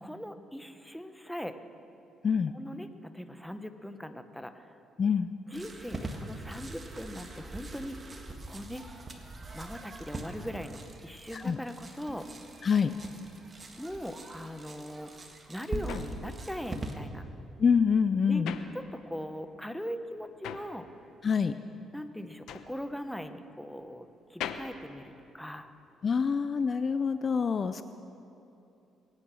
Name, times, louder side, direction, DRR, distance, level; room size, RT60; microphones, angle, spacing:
voice 1, 0.0-1.6 2.5-2.9 3.1-4.7 5.5-8.2 8.5-8.8 9.5-12.3 13.8-17.3 18.3-18.4 18.7-20.9 21.9-25.7, equal, ahead, 9 dB, 0.9 m, -40 dB
voice 2, 5.0-5.3 11.3-11.6 12.6-12.9 17.6-18.5 21.2-21.5 26.0-27.8, left 6 dB, 40° left, 11 dB, 0.5 m, -26 dB
sound 1, 5.5-16.9, right 2 dB, 30° right, 1.6 m, -42 dB
sound 2, 15.1-19.4 19.7-25.9, left 9 dB, 80° left, 0.8 m, -43 dB
23.0 x 9.9 x 6.3 m, 2.9 s
cardioid pair, 100°, 0 cm